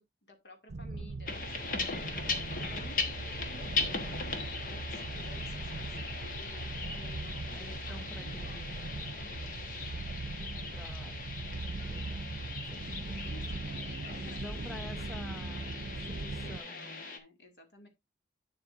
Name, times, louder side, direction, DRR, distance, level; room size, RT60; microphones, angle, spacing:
voice 1, 0.0-2.0 2.5-10.1 10.3-11.0 13.2-17.9, left 1 dB, 70° left, 2.4 m, -54 dB
sound 1, 0.7-16.6, right 3 dB, 70° right, 0.6 m, -40 dB
sound 2, 1.3-17.2, left 4 dB, 50° left, 1.3 m, -39 dB
voice 2, 2.6-2.9 7.5-8.8 9.3-9.5 10.7-11.2 11.5-12.3 12.7-13.2 14.1-17.0, left 1 dB, ahead, 0.8 m, -49 dB
8.8 x 7.5 x 2.6 m
head